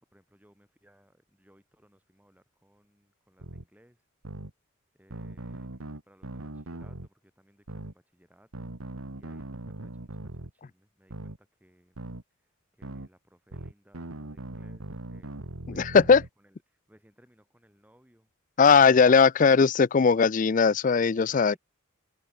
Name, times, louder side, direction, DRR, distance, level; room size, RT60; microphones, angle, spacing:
voice 1, 0.1-4.1 4.9-12.0 12.4-18.3 21.2-21.6, equal, 5° right, 7.9 m, -62 dB
sound 1, 3.4-3.6 4.2-4.5 5.1-7.1 7.7-7.9 8.5-10.5 11.1-11.4 12.0-12.2 12.8-13.1 13.5-16.3, right 1 dB, 85° right, 1.9 m, -40 dB
voice 2, 15.8-16.2 18.6-21.5, left 5 dB, 40° left, 0.4 m, -19 dB
head